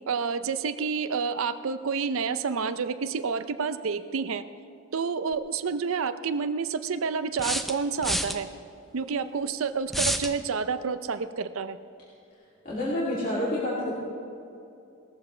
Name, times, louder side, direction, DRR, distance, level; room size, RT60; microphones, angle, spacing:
voice 1, 0.1-4.4 4.9-8.5 8.9-11.8, right 5 dB, 80° right, 11 dB, 0.5 m, -29 dB
sound 1, 5.3-5.4 7.4-8.4 9.9-10.3, equal, ahead, 0.5 m, -28 dB
voice 2, 12.6-13.9, left 1 dB, 40° left, -9 dB, 2.7 m, -28 dB
19.0 x 14.0 x 3.3 m, 2.6 s
head